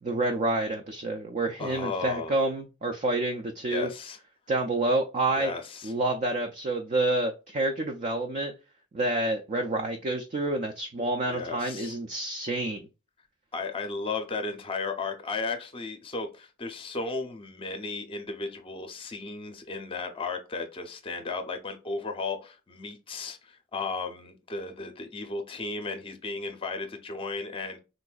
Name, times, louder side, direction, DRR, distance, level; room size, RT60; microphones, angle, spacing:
voice 1, 0.0-3.9 4.5-5.5 5.8-8.5 8.9-12.9, right 2 dB, 35° right, 0.4 m, -28 dB
voice 2, 1.6-2.4 3.7-4.2 5.3-5.9 11.3-12.0 13.5-27.8, left 3 dB, 25° left, 0.6 m, -35 dB
3.9 x 2.6 x 2.3 m
head